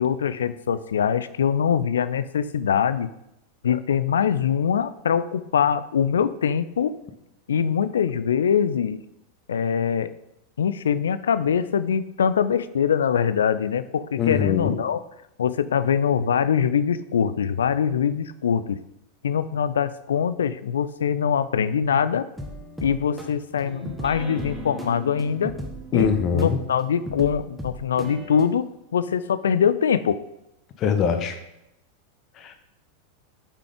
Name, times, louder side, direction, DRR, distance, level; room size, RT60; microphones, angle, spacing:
voice 1, 0.0-3.1 3.6-6.9 7.5-9.0 9.5-10.1 10.6-15.0 15.4-18.8 19.2-22.3 22.8-25.5 25.9-30.2, left 7 dB, 65° left, 15 dB, 0.4 m, -23 dB
voice 2, 14.2-14.8 25.9-26.6 30.8-31.4 32.4-32.5, left 7 dB, 35° left, 7 dB, 1.1 m, -23 dB
sound 1, 22.4-28.5, equal, 5° right, 1.2 m, -36 dB
6.8 x 5.9 x 5.1 m, 0.84 s
figure-of-eight pair, 90°, 0 cm